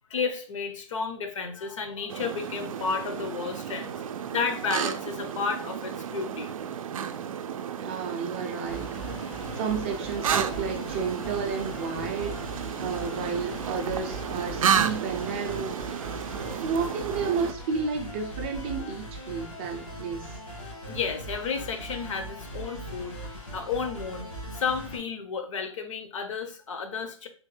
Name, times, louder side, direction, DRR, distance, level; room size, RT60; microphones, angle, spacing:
voice 1, 0.1-6.5 20.9-24.3 24.5-27.3, left 5 dB, 65° left, 8 dB, 0.7 m, -32 dB
sound 1, 2.1-17.5, right 8 dB, 90° right, 0.4 m, -32 dB
voice 2, 7.8-9.1 9.5-12.4 12.8-15.8 16.4-20.4, right 5 dB, 20° right, 2 dB, 0.3 m, -32 dB
sound 2, 8.7-25.0, equal, 85° left, 1.6 m, -40 dB
3.6 x 2.1 x 3.1 m, 0.42 s
hypercardioid pair, 160°, 17 cm